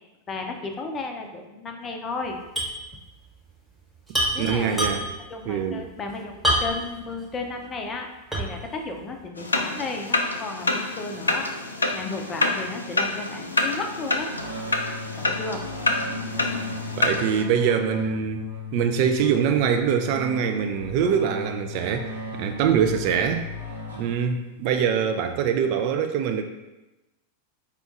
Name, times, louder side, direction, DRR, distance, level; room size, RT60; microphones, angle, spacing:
voice 1, 0.3-2.4 4.3-4.8 5.3-8.1 8.4-11.5 11.9-14.3 15.2-15.6 16.1-16.3, left 3 dB, 25° left, 4 dB, 0.5 m, -34 dB
sound 1, 2.6-2.8 3.1-3.2 4.1-5.3 6.4-7.0 7.5-7.6 8.3-8.7, right 1 dB, 5° right, 1.1 m, -25 dB
voice 2, 4.4-5.0 5.5-5.8 16.9-18.5 18.7-23.4 24.0-26.4, right 7 dB, 45° right, 6 dB, 0.3 m, -24 dB
sound 2, 9.4-17.4, left 2 dB, 80° left, 0.3 m, -27 dB
sound 3, 14.3-24.6, left 3 dB, 80° right, 0.7 m, -36 dB
4.3 x 2.3 x 3.9 m, 1.0 s
figure-of-eight pair, 90°, 0 cm